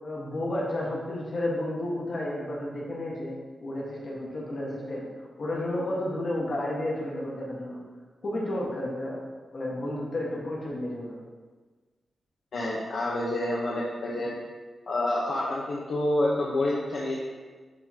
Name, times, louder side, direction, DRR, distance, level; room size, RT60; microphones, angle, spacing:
voice 1, 0.0-3.3 3.6-5.0 5.4-7.8 8.2-9.2 9.5-11.1, left 1 dB, 45° left, -4 dB, 1.5 m, -31 dB
voice 2, 12.5-14.3 14.9-17.2, left 1 dB, 60° left, -6 dB, 0.9 m, -28 dB
11.0 x 3.7 x 2.9 m, 1.4 s
wide cardioid pair, 165°, 0 cm